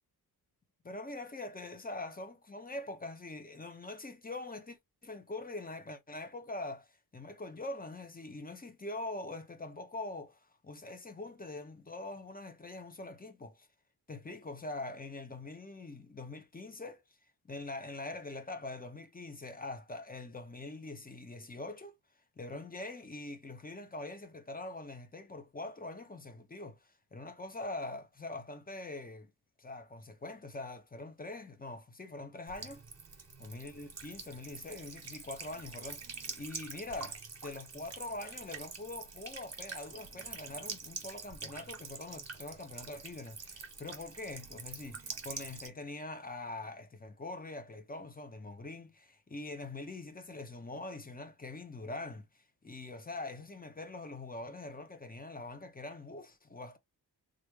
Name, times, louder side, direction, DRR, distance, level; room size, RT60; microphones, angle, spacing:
voice 1, 0.8-13.7 14.1-17.0 17.4-22.0 22.4-29.3 29.6-32.8 33.4-56.8, left 2 dB, 25° left, 0.8 m, -43 dB
Buzz / Water tap faucet / Trickle dribble, 32.5-45.7, right 4 dB, 40° right, 1.3 m, -46 dB
3.2 x 2.5 x 3.1 m
cardioid pair, 80°, 38 cm